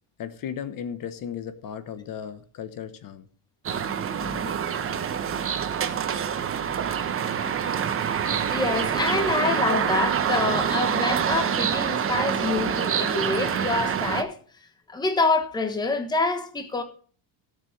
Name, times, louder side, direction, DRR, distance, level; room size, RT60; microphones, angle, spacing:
voice 1, 0.2-3.3 4.2-4.7 8.9-9.5 13.2-13.5, left 8 dB, 50° left, 1.2 m, -37 dB
sound 1, 3.6-14.2, right 8 dB, 30° right, 1.1 m, -26 dB
voice 2, 8.5-14.4 14.9-16.8, left 3 dB, 10° left, 1.1 m, -26 dB
17.0 x 7.0 x 3.3 m
cardioid pair, 165°, 43 cm